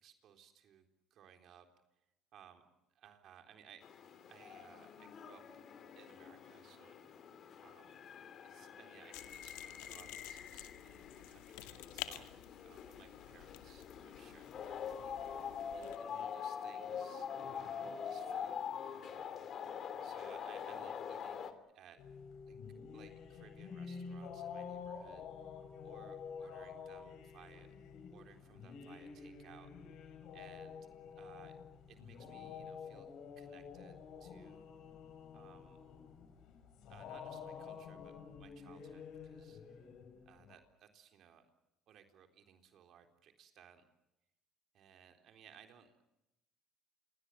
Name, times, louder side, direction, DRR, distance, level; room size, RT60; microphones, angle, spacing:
voice 1, 0.0-0.8 1.1-1.7 2.3-2.7 2.9-3.8 4.3-5.4 6.0-8.1 8.4-18.6 19.1-22.0 22.5-22.6 22.9-25.3 25.8-27.7 28.1-29.7 30.0-30.1 30.3-30.8 31.1-31.6 31.9-33.1 33.4-34.7 35.3-35.8 36.9-39.9 40.3-41.4 41.9-43.8 44.7-45.9, right 9 dB, 55° right, 6 dB, 3.8 m, -61 dB
sound 1, 3.8-21.5, left 7 dB, 50° left, 3.0 m, -45 dB
sound 2, 9.1-16.0, left 15 dB, 85° left, 2.2 m, -51 dB
sound 3, 22.0-40.5, left 6 dB, 65° left, 6.2 m, -49 dB
28.0 x 22.5 x 7.5 m, 0.88 s
supercardioid pair, 95°, 0 cm